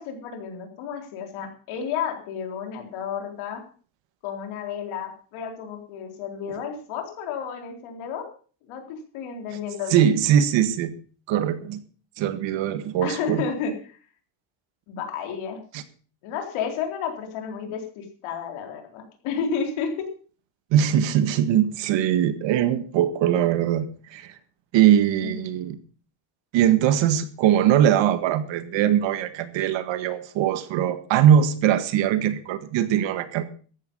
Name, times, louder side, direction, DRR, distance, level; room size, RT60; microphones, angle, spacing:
voice 1, 0.0-3.6 4.2-8.3 8.7-10.1 13.0-14.0 14.9-15.6 16.2-19.9 25.2-25.5, left 6 dB, 75° left, 4 dB, 4.2 m, -32 dB
voice 2, 9.9-10.9 11.3-11.8 12.2-13.4 15.7-15.8 20.7-24.3 24.7-25.8 26.5-33.4, right 10 dB, 60° right, 12 dB, 1.7 m, -21 dB
14.0 x 11.0 x 5.5 m, 0.40 s
cardioid pair, 160°, 49 cm